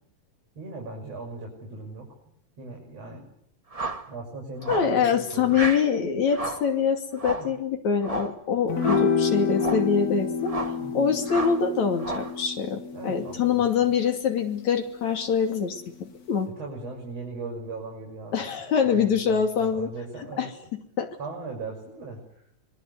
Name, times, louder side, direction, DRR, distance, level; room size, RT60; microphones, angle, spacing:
voice 1, 0.6-2.1 2.6-3.2 4.1-5.7 7.3-7.5 10.8-11.1 12.9-13.9 16.6-18.5 18.8-20.5 21.2-22.2, right 3 dB, 55° right, 0 dB, 7.6 m, -38 dB
sound 1, 3.7-4.1 4.6-5.0 5.5-5.9 6.3-6.7 7.2-7.5 8.0-8.4 8.8-9.1 9.6-9.9 10.5-10.8 11.3-11.6 12.0-12.4, right 2 dB, 25° right, 0.7 m, -32 dB
voice 2, 4.7-10.6 10.9-16.5 18.3-19.9 20.4-20.5 21.0-21.1, left 6 dB, 70° left, 6 dB, 4.0 m, -24 dB
sound 2, 8.7-15.2, left 5 dB, 40° left, 1.5 m, -29 dB
25.5 x 22.0 x 9.7 m, 0.69 s
omnidirectional pair, 3.4 m